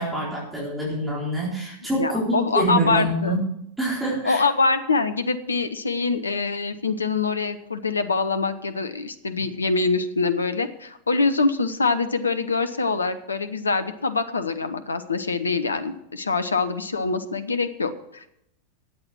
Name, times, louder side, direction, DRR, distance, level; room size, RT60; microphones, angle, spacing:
voice 1, 0.0-3.4 3.8-4.4, right 1 dB, 5° right, -6 dB, 4.2 m, -26 dB
voice 2, 1.9-3.4 4.2-18.3, left 4 dB, 75° left, 11 dB, 1.0 m, -24 dB
13.0 x 8.8 x 6.2 m, 0.79 s
figure-of-eight pair, 90°, 0 cm